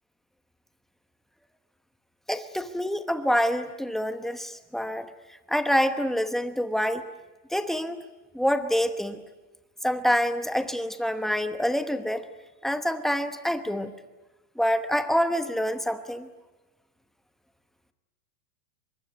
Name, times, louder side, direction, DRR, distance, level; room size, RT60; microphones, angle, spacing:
voice 1, 2.3-5.1 5.5-7.0 7.5-8.0 8.3-9.2 9.8-12.3 12.6-13.9 14.6-16.3, equal, ahead, 8 dB, 0.9 m, -26 dB
23.5 x 23.0 x 9.2 m, 1.1 s
supercardioid pair, 145°, 46 cm